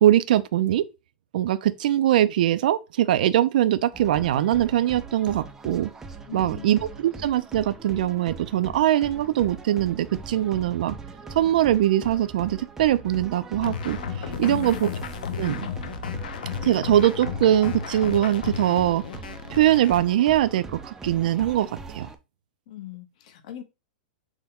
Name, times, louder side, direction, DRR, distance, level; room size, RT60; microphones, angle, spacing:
voice 1, 0.0-0.9 1.3-5.9 6.3-11.0 11.3-14.0 14.4-14.9 15.4-15.7 16.6-19.0 19.5-22.1, right 12 dB, 70° right, 0.5 m, -22 dB
sound 1, 3.9-22.2, right 4 dB, 10° right, 0.4 m, -41 dB
voice 2, 6.3-6.7 14.4-14.9 22.7-23.6, left 13 dB, 55° left, 0.9 m, -39 dB
sound 2, 13.6-20.0, left 7 dB, 85° left, 0.7 m, -33 dB
6.1 x 2.2 x 3.7 m
supercardioid pair, 160°, 5 cm